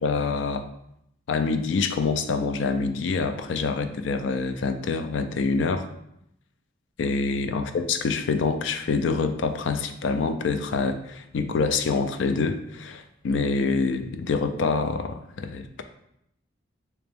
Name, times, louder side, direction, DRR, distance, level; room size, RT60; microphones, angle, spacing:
voice 1, 0.0-0.6 1.3-5.9 7.0-15.8, left 4 dB, 80° left, 8 dB, 0.4 m, -26 dB
3.4 x 3.0 x 3.4 m, 0.78 s
head